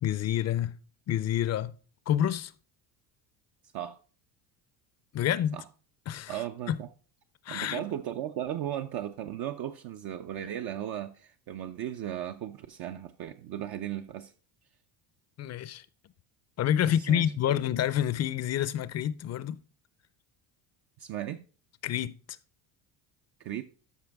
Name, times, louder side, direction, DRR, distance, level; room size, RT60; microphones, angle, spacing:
voice 1, 0.0-0.7 1.1-1.7 2.1-2.5 5.1-5.6 6.1-6.3 6.7-6.8 7.4-7.8 15.4-15.9 16.6-19.6 21.8-22.2, left 10 dB, 35° left, 0.5 m, -28 dB
voice 2, 6.3-6.9 7.5-14.3 17.0-17.6 21.0-21.4 23.4-23.6, right 11 dB, 50° right, 0.6 m, -36 dB
13.0 x 5.3 x 3.5 m
cardioid pair, 120°, 48 cm